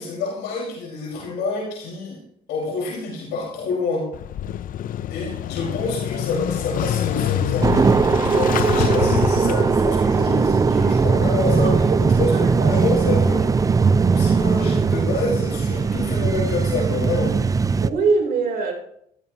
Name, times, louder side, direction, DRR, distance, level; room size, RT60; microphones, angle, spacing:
voice 1, 0.0-2.2 2.5-4.1 5.1-13.4 14.1-17.3, left 3 dB, 85° left, 5.2 m, -27 dB
Motorcycle / Engine starting, 4.1-10.0, left 11 dB, 55° left, 0.6 m, -26 dB
sound 1, 7.6-17.9, right 5 dB, 20° right, 0.5 m, -19 dB
voice 2, 11.5-12.7 13.2-13.3 17.8-18.7, right 4 dB, 60° right, 3.9 m, -24 dB
14.5 x 14.5 x 3.0 m
cardioid pair, 110°, 17 cm